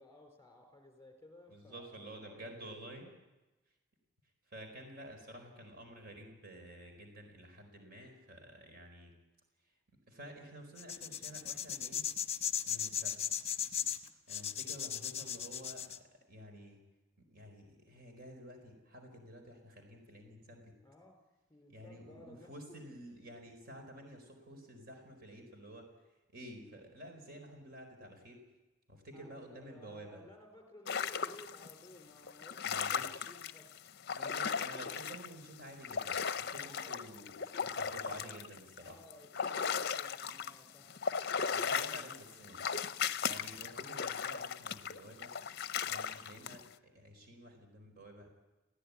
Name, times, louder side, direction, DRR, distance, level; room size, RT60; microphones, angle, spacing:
voice 1, 0.0-2.9 20.8-21.2 21.5-22.5 29.1-33.6 34.1-34.6 36.6-37.1 37.6-38.5 38.7-41.0, left 1 dB, 15° left, 3 dB, 4.3 m, -57 dB
voice 2, 1.5-3.1 4.5-9.1 10.1-12.1 12.6-13.2 14.3-16.8 17.2-20.8 21.7-25.9 26.3-28.4 28.9-30.2 32.6-33.2 34.1-37.3 37.6-39.0 41.5-42.7 43.2-45.3 45.8-48.3, right 1 dB, 50° right, 4 dB, 4.5 m, -51 dB
sound 1, 10.8-16.0, left 9 dB, 30° left, 1.1 m, -37 dB
sound 2, 30.9-31.7 32.3-35.3 35.6-40.5 40.9-46.6, left 6 dB, 50° left, 0.6 m, -37 dB
21.0 x 16.0 x 9.6 m, 1.1 s
head